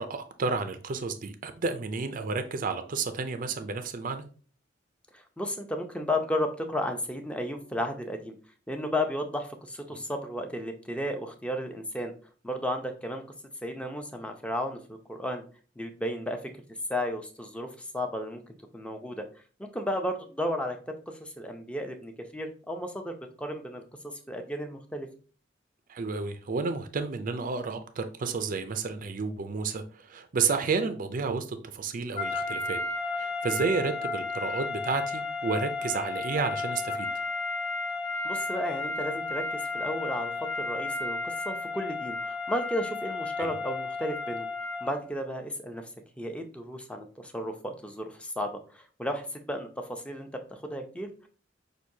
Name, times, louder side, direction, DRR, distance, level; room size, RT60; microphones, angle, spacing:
voice 1, 0.0-4.2 9.9-10.0 25.9-32.8 33.2-37.1 43.4-43.5, right 4 dB, 45° right, 0.4 m, -31 dB
voice 2, 5.1-8.4 8.7-12.1 12.4-13.2 13.6-15.4 15.8-16.4 16.9-19.2 19.7-20.8 21.1-23.8 24.3-25.1 38.2-39.4 39.7-44.5 44.8-45.9 46.2-51.3, left 1 dB, 5° left, 0.6 m, -33 dB
sound 1, 32.1-45.0, left 3 dB, 30° left, 1.0 m, -33 dB
6.0 x 2.6 x 2.7 m
head